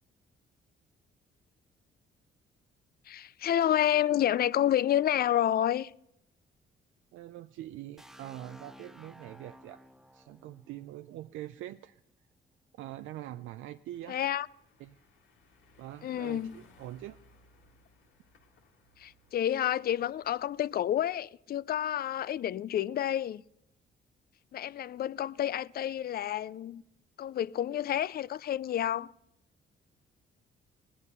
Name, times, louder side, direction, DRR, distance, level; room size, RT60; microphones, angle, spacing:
voice 1, 3.1-5.9 14.1-14.5 16.0-16.5 19.0-23.4 24.5-26.8 27.2-29.1, left 11 dB, 50° left, 0.4 m, -29 dB
voice 2, 7.1-9.8 10.1-12.0 12.8-14.2 14.8-15.0 15.8-17.2, right 14 dB, 85° right, 0.4 m, -44 dB
sound 1, 8.0-11.8, equal, ahead, 0.5 m, -54 dB
sound 2, 13.9-20.6, left 3 dB, 80° left, 2.0 m, -63 dB
16.5 x 11.0 x 5.4 m
cardioid pair, 90°, 20 cm